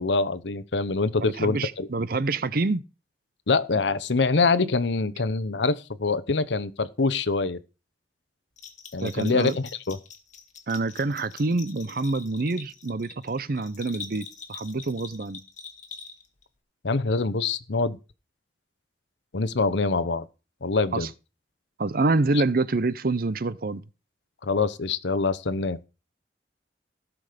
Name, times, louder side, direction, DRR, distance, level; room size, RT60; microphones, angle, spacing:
voice 1, 0.0-1.9 3.5-7.6 8.9-10.0 16.8-18.0 19.3-20.3 20.6-21.1 24.4-25.8, left 3 dB, 85° left, 0.8 m, -25 dB
voice 2, 1.2-2.8 9.0-9.6 10.7-15.4 20.9-21.1 21.8-23.8, right 3 dB, 55° right, 0.7 m, -26 dB
Bell, 8.6-16.4, left 5 dB, 45° left, 1.9 m, -44 dB
16.5 x 6.2 x 5.1 m
head